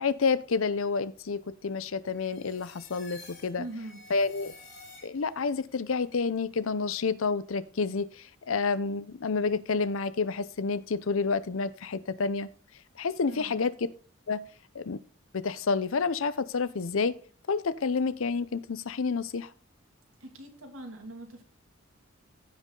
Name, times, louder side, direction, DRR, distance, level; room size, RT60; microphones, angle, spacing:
voice 1, 0.0-3.6 4.1-4.5 5.0-12.5 13.0-13.7 14.3-14.4 14.7-15.0 15.3-17.1 17.5-19.5, left 4 dB, 70° left, 16 dB, 0.6 m, -29 dB
sound 1, 2.1-5.5, left 3 dB, 45° left, 4.6 m, -51 dB
voice 2, 3.6-4.0 13.3-13.6 20.2-21.4, right 1 dB, 85° right, 2 dB, 2.5 m, -42 dB
15.5 x 5.2 x 3.8 m, 0.41 s
head